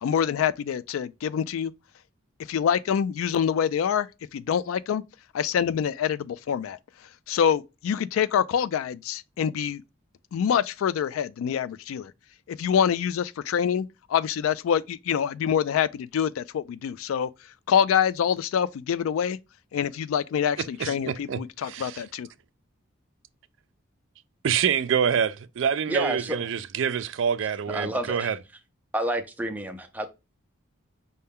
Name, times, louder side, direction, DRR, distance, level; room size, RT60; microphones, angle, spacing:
voice 1, 0.0-1.7 2.5-5.0 5.3-6.8 7.3-9.8 10.3-12.1 12.5-17.3 17.7-19.4 19.7-22.3, left 8 dB, 85° left, 0.3 m, -26 dB
voice 2, 20.8-22.0 24.4-28.4, right 7 dB, 65° right, 0.3 m, -26 dB
voice 3, 25.9-26.5 27.7-28.4 28.9-30.1, right 1 dB, 10° right, 0.5 m, -29 dB
5.5 x 2.2 x 3.5 m
head